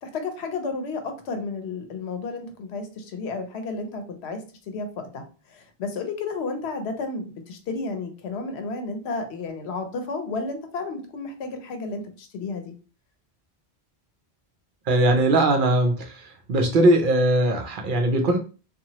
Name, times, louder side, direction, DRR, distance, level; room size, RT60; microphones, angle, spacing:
voice 1, 0.0-4.4 4.7-4.9 5.1-5.2 5.5-12.7, left 3 dB, 85° left, 6 dB, 0.9 m, -32 dB
voice 2, 14.9-16.2 16.5-18.4, right 1 dB, 60° right, 4 dB, 0.6 m, -20 dB
2.9 x 2.3 x 2.8 m, 0.36 s
omnidirectional pair, 1.1 m